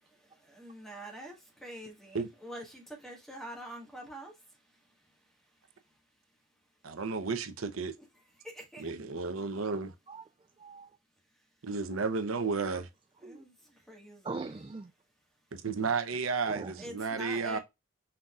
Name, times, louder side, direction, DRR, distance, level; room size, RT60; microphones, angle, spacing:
voice 1, 0.1-6.0 8.0-8.1 8.4-8.9 11.3-11.5 13.2-14.3 16.8-17.6, right 1 dB, ahead, 1.5 m, -47 dB
voice 2, 6.8-7.9 8.8-9.9 11.6-12.9 15.5-17.6, right 4 dB, 85° right, 0.8 m, -32 dB
voice 3, 10.1-11.0 12.7-12.8 13.2-13.4 14.2-14.9 16.4-16.9, right 3 dB, 25° right, 0.3 m, -42 dB
5.8 x 3.8 x 2.4 m
head